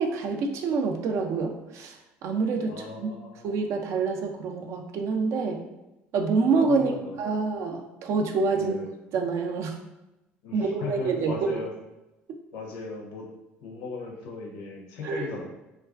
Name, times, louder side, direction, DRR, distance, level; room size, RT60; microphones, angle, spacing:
voice 1, 0.0-2.0 2.2-3.1 3.4-5.6 6.1-6.9 7.2-8.7 9.1-9.8 10.5-11.6 15.0-15.2, right 4 dB, 65° right, 4 dB, 0.3 m, -26 dB
voice 2, 2.6-3.7 6.7-7.5 8.5-8.9 10.4-11.7 12.5-13.3 13.6-15.4, left 3 dB, 80° left, 0 dB, 0.5 m, -38 dB
2.3 x 2.3 x 2.3 m, 0.97 s
supercardioid pair, 70°, 5 cm